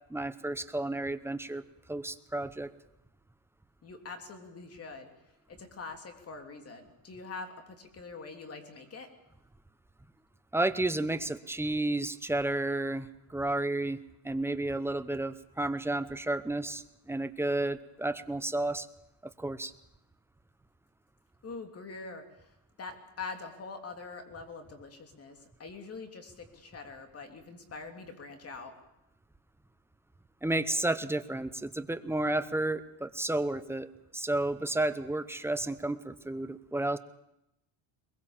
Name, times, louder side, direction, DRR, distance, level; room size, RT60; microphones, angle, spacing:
voice 1, 0.1-1.6 1.9-2.7 10.5-14.0 14.2-18.9 19.4-19.7 30.4-37.0, right 2 dB, 5° right, 11 dB, 0.7 m, -32 dB
voice 2, 3.8-5.1 5.5-9.1 21.4-22.5 22.8-28.8, left 4 dB, 30° left, 5 dB, 3.1 m, -44 dB
22.0 x 21.5 x 7.3 m, 0.86 s
cardioid pair, 135°, 46 cm